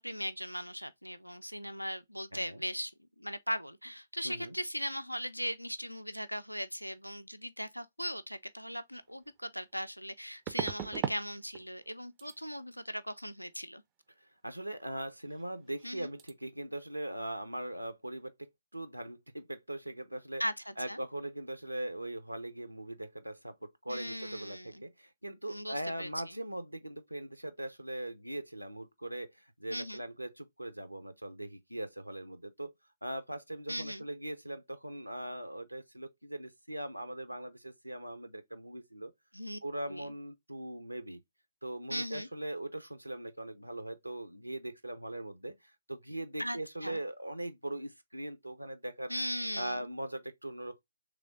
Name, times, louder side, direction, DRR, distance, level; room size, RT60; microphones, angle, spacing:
voice 1, 0.0-2.9 3.2-13.8 15.8-16.1 20.4-21.0 23.9-24.8 25.5-26.1 29.7-30.0 33.7-34.0 39.3-39.6 39.9-40.1 41.9-42.3 46.4-47.0 49.1-49.8, equal, 90° left, 0.4 m, -38 dB
voice 2, 2.3-2.6 4.2-4.6 14.2-20.4 20.8-32.7 33.0-39.1 39.6-41.2 41.6-49.1 49.5-50.8, right 1 dB, 85° right, 0.6 m, -40 dB
sound 1, 8.9-9.0 10.5-11.2 11.5-11.9 12.2-12.4 15.3-15.4 15.7-15.9 16.2-16.3, right 10 dB, 20° right, 0.4 m, -37 dB
3.4 x 3.3 x 3.6 m
figure-of-eight pair, 130°, 0 cm